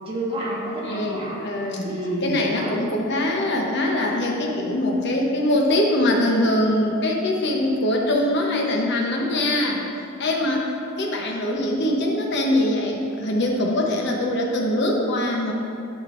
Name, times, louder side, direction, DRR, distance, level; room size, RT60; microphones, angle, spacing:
voice 1, 0.0-1.4 1.8-2.7, right 1 dB, 25° right, -5 dB, 1.4 m, -29 dB
voice 2, 0.8-1.9 2.2-9.8 10.2-15.5, left 1 dB, 55° left, 0 dB, 1.0 m, -23 dB
11.5 x 5.2 x 2.6 m, 2.6 s
head